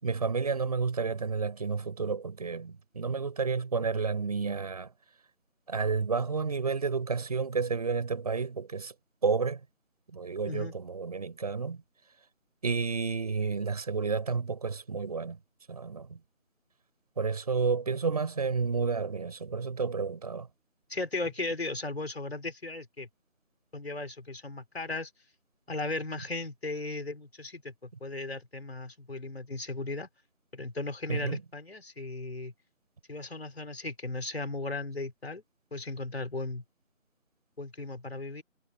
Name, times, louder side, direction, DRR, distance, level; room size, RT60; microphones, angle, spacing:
voice 1, 0.0-4.9 5.7-8.9 9.2-9.6 10.1-11.8 12.6-15.4 15.7-16.2 17.2-20.5 31.1-31.4, right 5 dB, 30° right, 7.6 m, -31 dB
voice 2, 20.9-23.1 23.7-25.1 25.7-30.1 30.5-32.5 33.1-35.4 35.7-36.6 37.6-38.4, left 2 dB, 50° left, 5.3 m, -36 dB
figure-of-eight pair, 170°, 40 cm